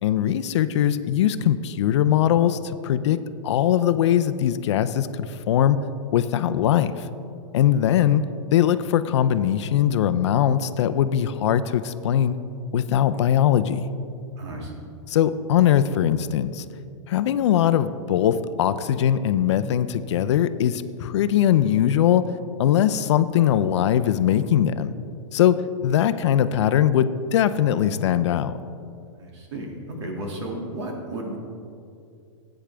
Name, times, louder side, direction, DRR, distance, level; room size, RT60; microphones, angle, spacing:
voice 1, 0.0-3.2 3.4-5.8 6.1-7.1 7.5-8.2 8.5-12.4 12.7-13.8 15.1-16.6 17.1-22.3 22.6-24.9 25.3-28.5, left 10 dB, 60° left, 12 dB, 0.5 m, -21 dB
voice 2, 14.4-14.9 22.8-23.0 29.2-31.4, right 1 dB, 65° right, 0 dB, 2.3 m, -34 dB
13.5 x 8.8 x 3.4 m, 2.4 s
supercardioid pair, 160°, 16 cm